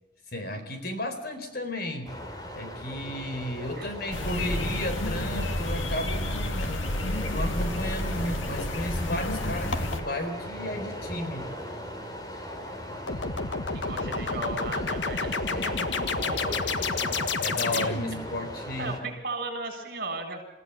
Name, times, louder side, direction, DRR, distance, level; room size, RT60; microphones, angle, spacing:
voice 1, 0.3-2.2 2.5-6.9 7.3-11.5 15.5-15.9 17.4-19.1, left 1 dB, 50° left, 7 dB, 4.2 m, -34 dB
sound 1, 2.1-19.0, equal, 20° left, 3.2 m, -38 dB
sound 2, 4.1-10.0, left 1 dB, 85° left, 2.1 m, -30 dB
sound 3, 13.1-18.3, left 4 dB, 70° left, 1.5 m, -30 dB
voice 2, 13.7-17.3 17.7-18.4 18.8-20.4, right 2 dB, 50° right, 4 dB, 7.6 m, -37 dB
29.5 x 16.0 x 7.3 m, 0.97 s
head